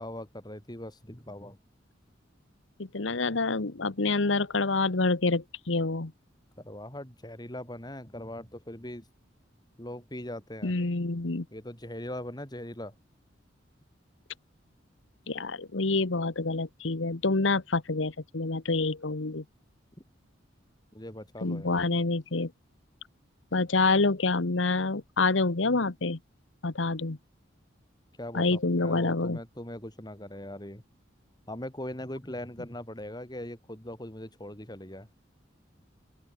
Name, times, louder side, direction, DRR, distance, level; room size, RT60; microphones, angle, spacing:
voice 1, 0.0-1.6 6.6-9.1 9.8-10.7 11.5-12.9 20.9-21.8 28.2-30.8 31.5-35.1, left 1 dB, 20° left, 5.3 m, -40 dB
voice 2, 2.8-6.1 10.6-11.4 15.3-19.4 21.4-22.5 23.5-26.2 26.6-27.2 28.3-29.4, left 3 dB, 80° left, 1.2 m, -27 dB
open air
head